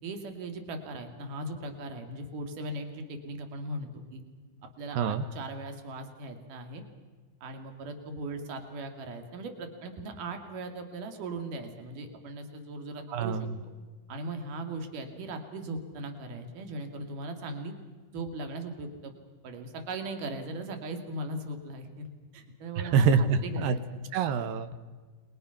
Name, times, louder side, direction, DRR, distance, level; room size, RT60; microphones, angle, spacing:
voice 1, 0.0-4.2 4.8-6.8 7.4-13.4 14.1-17.7 18.1-19.1 19.4-22.1 22.3-24.0, right 2 dB, 55° right, 5 dB, 3.7 m, -38 dB
voice 2, 13.1-13.6 22.9-23.8 24.1-24.8, right 5 dB, 75° right, 11 dB, 2.4 m, -25 dB
29.0 x 22.5 x 5.9 m, 1.4 s
omnidirectional pair, 4.6 m